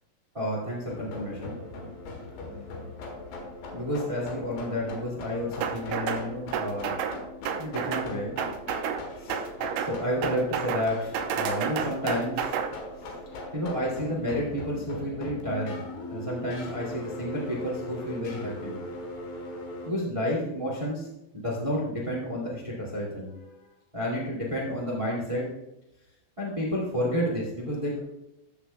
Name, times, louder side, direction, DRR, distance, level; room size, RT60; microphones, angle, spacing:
voice 1, 0.3-1.6 3.7-7.0 7.6-8.3 9.2-9.4 9.8-12.6 13.0-13.1 13.5-18.8 19.8-23.7 23.9-25.4 26.4-28.0, equal, 10° right, -4 dB, 1.6 m, -31 dB
sound 1, 0.9-19.9, left 2 dB, 75° left, 3.4 m, -40 dB
sound 2, 5.6-6.2 6.5-7.2 7.5-8.1 8.4-9.0 9.3-9.9 10.2-10.9 11.1-12.7, right 8 dB, 90° right, 2.6 m, -30 dB
15.0 x 7.1 x 2.3 m, 0.87 s
omnidirectional pair, 4.3 m